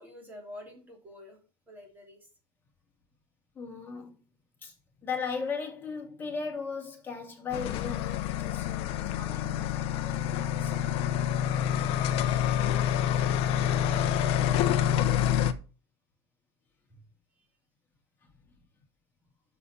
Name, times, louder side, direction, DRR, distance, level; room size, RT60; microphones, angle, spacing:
voice 1, 0.0-1.4 1.7-2.3 11.1-11.6, left 1 dB, 15° right, 3.3 m, -48 dB
voice 2, 3.5-4.2 4.6-4.7 5.0-10.8 12.1-12.4 13.0-14.1, left 5 dB, 15° left, 2.8 m, -38 dB
sound 1, 7.5-15.5, left 10 dB, 45° left, 0.9 m, -27 dB
6.9 x 6.0 x 6.9 m
supercardioid pair, 165°, 14 cm